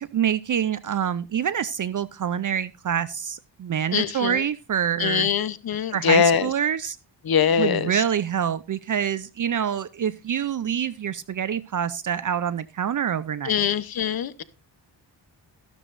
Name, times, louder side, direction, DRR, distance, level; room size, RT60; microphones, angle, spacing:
voice 1, 0.0-5.3 5.9-7.0 7.6-13.7, right 8 dB, 45° right, 0.5 m, -26 dB
voice 2, 3.9-4.4 5.0-6.5 7.2-8.0 13.4-14.4, left 7 dB, 55° left, 0.9 m, -22 dB
12.0 x 12.0 x 2.5 m
wide cardioid pair, 145°, 43 cm